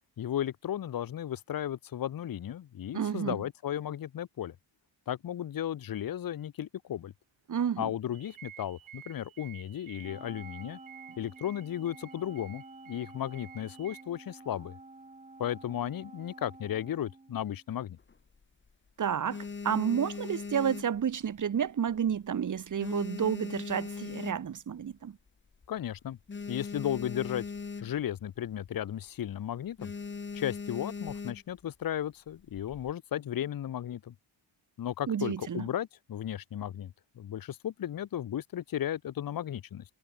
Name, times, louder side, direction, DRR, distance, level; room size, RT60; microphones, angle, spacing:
voice 1, 0.2-4.5 5.1-7.1 7.8-10.8 11.2-14.8 15.4-18.0 25.7-26.2 26.5-27.4 27.8-29.9 30.3-34.1 34.8-39.8, left 11 dB, 45° left, 0.8 m, -35 dB
voice 2, 2.9-3.4 7.5-7.9 19.0-25.1 35.1-35.6, right 8 dB, 40° right, 1.0 m, -30 dB
sound 1, 8.1-14.0, right 11 dB, 80° right, 1.8 m, -52 dB
Wind instrument woodwind instrument, 10.0-17.7, right 2 dB, 15° right, 1.8 m, -50 dB
sound 2, 18.0-18.7 19.1-21.6 21.9-22.3 22.6-24.8 25.3-25.4 25.5-25.7 26.0-28.2 28.5-28.8 29.1-29.3 29.8-31.6 32.3-32.9, left 5 dB, 25° left, 1.2 m, -40 dB
wide cardioid pair, 135°, 47 cm